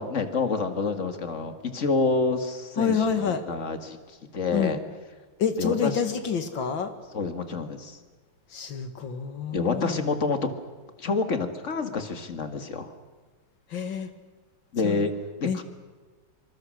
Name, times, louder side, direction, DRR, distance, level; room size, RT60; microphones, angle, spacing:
voice 1, 0.0-4.0 4.3-4.8 5.6-6.0 7.1-8.0 9.5-10.5 11.0-12.9 14.7-15.1 15.4-15.6, left 4 dB, 35° left, 7 dB, 2.1 m, -28 dB
voice 2, 2.8-3.4 4.5-4.8 5.4-6.9 8.5-10.0 13.7-14.1 14.8-15.1 15.4-15.6, left 6 dB, 65° left, 8 dB, 2.5 m, -28 dB
27.0 x 25.0 x 6.5 m, 1.4 s
omnidirectional pair, 2.2 m